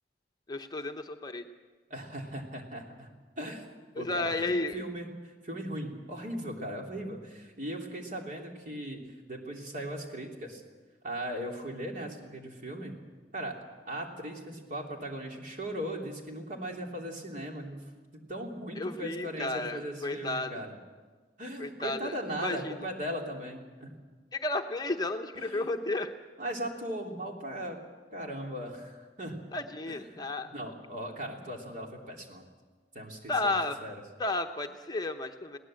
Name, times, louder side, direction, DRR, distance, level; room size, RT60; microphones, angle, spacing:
voice 1, 0.5-1.5 3.9-4.8 18.7-20.6 21.6-22.8 24.3-26.1 29.5-30.5 33.3-33.8 34.2-35.6, left 2 dB, 25° left, 5 dB, 0.9 m, -33 dB
voice 2, 1.9-3.1 3.4-3.7 3.9-4.3 4.7-9.0 9.3-10.6 11.0-12.9 13.3-13.5 13.9-17.8 18.1-20.7 21.4-23.9 25.4-25.8 26.4-27.8 28.1-29.4 29.9-30.2 30.5-32.4 32.9-33.5 33.8-33.9, right 1 dB, 50° right, 1 dB, 3.3 m, -38 dB
21.5 x 17.5 x 7.8 m, 1.4 s
head